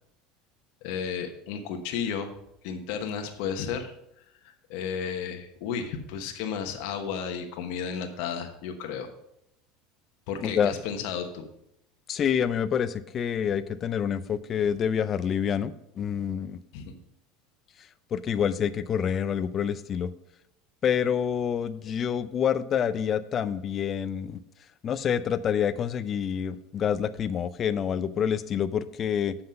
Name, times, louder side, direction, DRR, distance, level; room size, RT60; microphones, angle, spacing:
voice 1, 0.8-2.3 2.6-3.9 4.7-9.1 10.3-11.4 16.7-16.9, left 7 dB, 70° left, 5 dB, 1.1 m, -33 dB
voice 2, 10.4-10.7 12.1-16.6 18.1-20.1 20.8-24.4 24.8-29.4, left 8 dB, 40° left, 14 dB, 0.5 m, -27 dB
7.7 x 5.8 x 5.3 m, 0.78 s
supercardioid pair, 105°, 0 cm